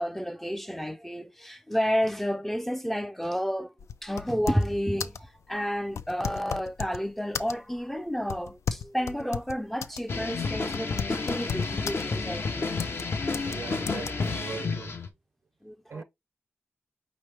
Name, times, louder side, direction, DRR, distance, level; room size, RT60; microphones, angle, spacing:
voice 1, 0.0-3.7 4.0-12.7 13.1-13.2 15.6-16.0, equal, 5° left, 0.4 m, -31 dB
sound 1, 3.8-4.8 5.0-5.3 5.9-7.0 7.4-7.8 8.3-10.1 10.3-10.4 10.7-12.0 12.8-13.1 13.3-13.6 13.9-14.1, left 7 dB, 80° left, 0.3 m, -35 dB
sound 2, 10.1-15.1, left 4 dB, 55° left, 0.7 m, -31 dB
voice 2, 13.4-15.0 15.9-16.0, right 5 dB, 65° right, 0.5 m, -39 dB
5.1 x 3.0 x 3.3 m
cardioid pair, 65°, 5 cm